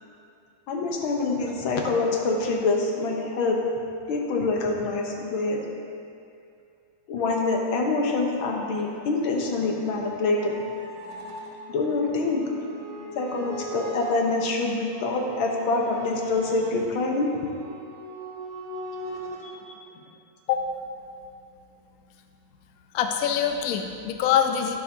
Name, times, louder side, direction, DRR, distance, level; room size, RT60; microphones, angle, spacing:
voice 1, 0.7-3.6 4.1-5.6 7.1-10.6 11.7-12.5 13.2-17.4 19.4-19.7, left 3 dB, 85° left, 1 dB, 1.8 m, -26 dB
sound 1, 8.8-19.5, right 1 dB, 60° right, 2.1 m, -40 dB
voice 2, 22.9-24.8, left 9 dB, 70° left, 5 dB, 0.9 m, -24 dB
11.5 x 8.9 x 2.8 m, 2.5 s
omnidirectional pair, 2.2 m